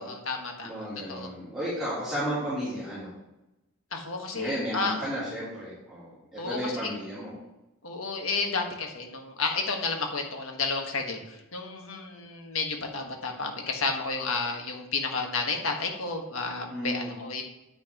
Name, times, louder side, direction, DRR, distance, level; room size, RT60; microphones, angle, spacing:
voice 1, 0.0-1.3 3.9-4.9 6.4-6.9 7.8-17.4, left 4 dB, 80° left, 3 dB, 1.5 m, -31 dB
voice 2, 0.6-3.1 4.3-7.3 16.7-17.1, equal, ahead, -14 dB, 3.3 m, -33 dB
9.1 x 8.7 x 3.0 m, 0.94 s
head